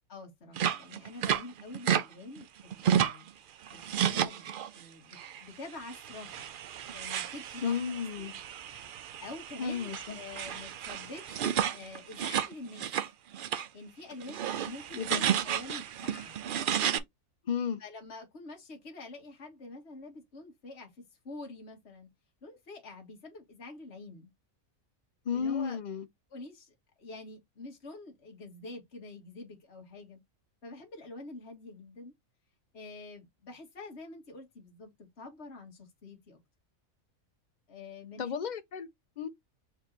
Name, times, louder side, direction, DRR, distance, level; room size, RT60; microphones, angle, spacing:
voice 1, 0.1-3.3 3.7-6.5 6.9-7.7 8.2-8.3 9.2-12.9 13.7-16.4 17.8-22.1 22.4-24.3 25.3-25.8 26.3-30.2 30.6-32.1 32.7-36.4 37.7-38.3, left 3 dB, 50° left, 1.8 m, -47 dB
sound 1, 0.6-2.1 2.4-3.3 3.7-4.8 5.1-5.4 5.9-13.1 13.3-13.7 14.1-17.0, right 9 dB, 75° right, 0.4 m, -32 dB
voice 2, 7.6-8.3 9.6-10.2 14.9-15.2 17.5-17.8 25.3-26.0 38.2-38.9 39.2-39.3, left 7 dB, 70° left, 0.4 m, -33 dB
4.6 x 2.8 x 3.7 m
omnidirectional pair, 1.4 m